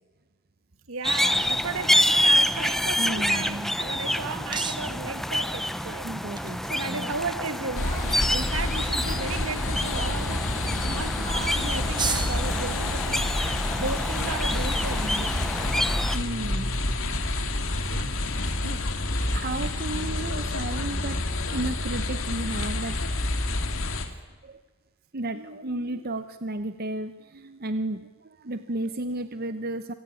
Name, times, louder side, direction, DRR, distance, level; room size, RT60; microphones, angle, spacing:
voice 1, 0.9-6.1 6.4-10.5 10.9-13.3 13.8-15.3 17.9-18.1 25.3-26.0, right 3 dB, 70° right, 1.7 m, -35 dB
sound 1, 1.0-16.2, equal, ahead, 0.7 m, -27 dB
voice 2, 3.0-3.8 6.0-7.1 16.1-16.7 17.6-17.7 18.6-18.8 19.3-21.2 21.5-23.0 24.4-24.5 25.1-29.9, right 2 dB, 45° right, 0.9 m, -33 dB
sound 2, 3.2-17.7, right 6 dB, 20° right, 1.0 m, -41 dB
sound 3, 7.7-24.1, left 2 dB, 65° left, 2.4 m, -28 dB
26.0 x 16.5 x 9.7 m
head